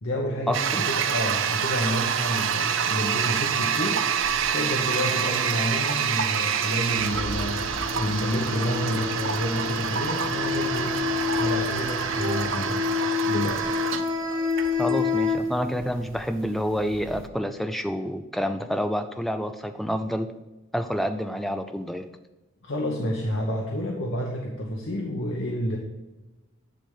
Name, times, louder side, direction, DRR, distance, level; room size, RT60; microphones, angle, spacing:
voice 1, 0.0-4.0 4.5-11.0 11.4-13.0 13.2-13.7 22.6-25.8, equal, 65° left, -2 dB, 1.0 m, -29 dB
Toilet flush, 0.5-17.3, right 7 dB, 65° right, 0.5 m, -27 dB
sound 1, 6.3-15.4, left 6 dB, 20° right, 1.0 m, -29 dB
sound 2, 7.0-12.5, right 3 dB, 80° right, 0.9 m, -37 dB
voice 2, 14.8-20.3 20.7-22.0, equal, ahead, 7 dB, 0.3 m, -28 dB
10.5 x 3.4 x 5.6 m, 1.1 s
head